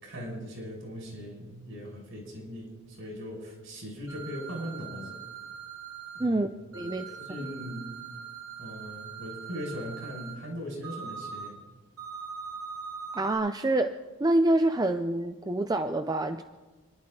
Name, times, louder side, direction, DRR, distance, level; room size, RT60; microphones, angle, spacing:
voice 1, 0.0-5.2 6.1-6.4 6.7-6.9 7.3-8.1 8.6-11.6, equal, 65° right, 0 dB, 5.2 m, -39 dB
sound 1, 4.1-6.2 6.7-10.3 10.8-11.5 12.0-13.3, right 6 dB, 85° right, 4.6 m, -41 dB
voice 2, 6.7-7.1 7.4-7.5 13.1-13.9 14.2-16.4, right 1 dB, 20° right, 8 dB, 0.5 m, -26 dB
30.0 x 11.0 x 3.8 m, 1.3 s
head